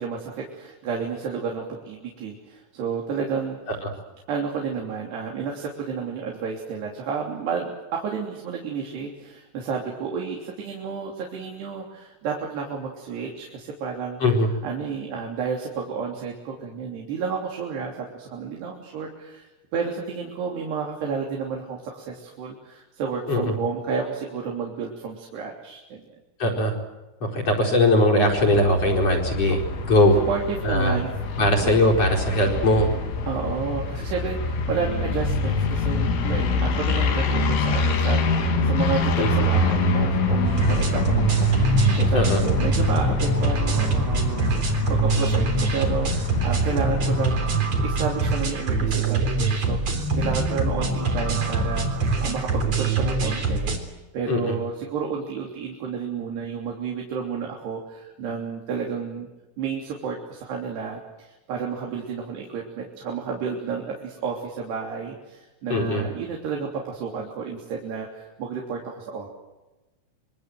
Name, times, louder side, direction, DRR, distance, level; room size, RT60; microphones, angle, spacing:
voice 1, 0.0-3.6 4.3-14.2 14.6-26.0 29.5-29.6 30.3-31.1 31.6-31.7 33.3-49.8 50.2-59.3 59.6-69.3, right 5 dB, 55° right, 0 dB, 5.1 m, -31 dB
voice 2, 26.4-26.7 27.2-29.6 29.9-30.2 30.6-31.0 31.4-32.9 39.2-39.3 42.1-42.4 54.3-54.6 65.7-66.0, left 1 dB, 30° left, 4 dB, 5.2 m, -20 dB
sound 1, 28.3-47.3, left 3 dB, 80° left, 5.5 m, -25 dB
sound 2, 40.4-53.8, right 3 dB, 35° right, 4.3 m, -24 dB
27.0 x 24.5 x 7.9 m, 1.1 s
omnidirectional pair, 5.8 m